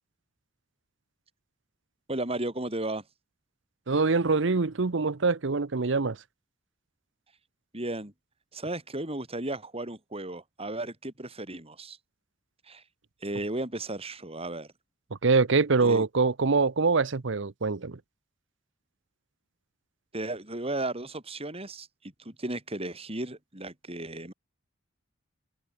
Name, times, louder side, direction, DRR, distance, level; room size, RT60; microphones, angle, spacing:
voice 1, 2.1-3.0 7.7-8.1 8.5-12.0 12.6-12.8 13.2-14.7 15.8-16.0 20.1-24.3, right 2 dB, 30° right, 5.8 m, -34 dB
voice 2, 3.9-6.2 15.2-18.0, right 4 dB, 70° right, 0.8 m, -24 dB
open air
head